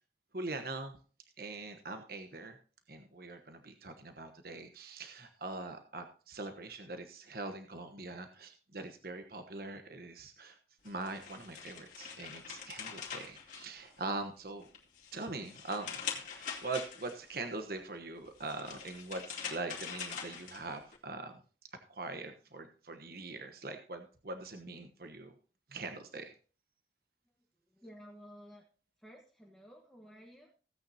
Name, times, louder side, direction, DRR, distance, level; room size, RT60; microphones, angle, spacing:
voice 1, 0.3-1.0 1.4-2.6 2.9-10.6 10.8-14.7 15.1-21.3 21.9-25.3 25.7-26.3, right 3 dB, 55° right, 6 dB, 1.1 m, -42 dB
sound 1, 10.9-14.2 14.6-17.3 18.3-21.0, left 7 dB, 45° left, 2.5 m, -44 dB
voice 2, 27.7-28.6 29.0-30.5, equal, 5° left, -1 dB, 1.4 m, -54 dB
16.5 x 8.9 x 2.8 m, 0.38 s
head